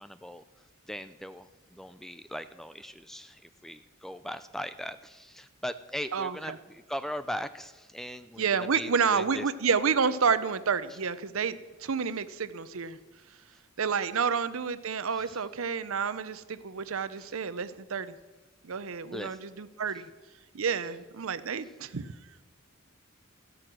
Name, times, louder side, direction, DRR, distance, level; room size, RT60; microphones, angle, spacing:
voice 1, 0.0-9.5 10.9-11.0 13.5-13.6 15.1-15.4 17.2-17.4 19.1-19.4 19.9-20.0 21.6-21.8, equal, ahead, 12 dB, 0.4 m, -40 dB
voice 2, 6.1-6.6 8.4-13.0 13.8-18.1 18.6-20.1 20.5-22.1, right 6 dB, 75° right, 14 dB, 0.7 m, -29 dB
14.0 x 12.5 x 6.1 m, 1.2 s
head